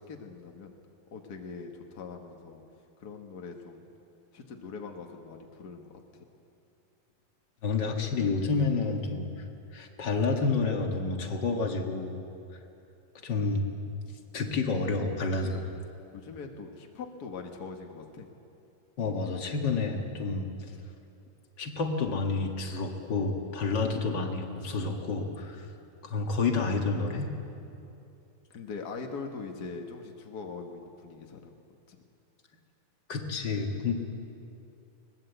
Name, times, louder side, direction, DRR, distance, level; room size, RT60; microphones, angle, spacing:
voice 1, 0.1-0.7 1.1-2.6 3.0-3.8 4.3-6.3 16.1-18.3 23.5-23.6 25.4-25.5 27.6-27.7 28.5-31.5 31.9-32.0, left 4 dB, 80° left, 3 dB, 0.9 m, -42 dB
voice 2, 7.6-9.3 9.7-12.2 13.2-13.6 14.3-15.7 19.0-20.5 21.6-25.7 26.0-27.3 33.1-33.9, left 4 dB, 45° left, 2 dB, 1.6 m, -29 dB
21.5 x 20.0 x 8.0 m, 2.7 s
omnidirectional pair, 4.0 m